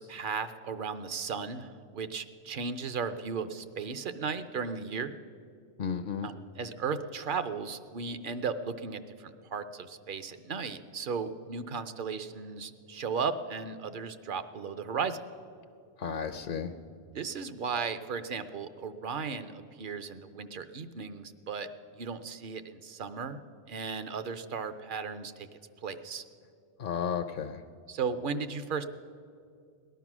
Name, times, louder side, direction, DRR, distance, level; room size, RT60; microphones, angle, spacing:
voice 1, 0.0-5.1 6.2-15.2 16.4-16.5 17.1-21.7 22.0-23.4 23.7-25.5 25.8-26.2 27.9-28.8, right 5 dB, 55° right, 11 dB, 0.8 m, -35 dB
voice 2, 5.8-6.3 16.0-16.7 26.8-27.6, left 7 dB, 55° left, 7 dB, 0.7 m, -33 dB
18.5 x 11.5 x 6.1 m, 2.4 s
omnidirectional pair, 1.2 m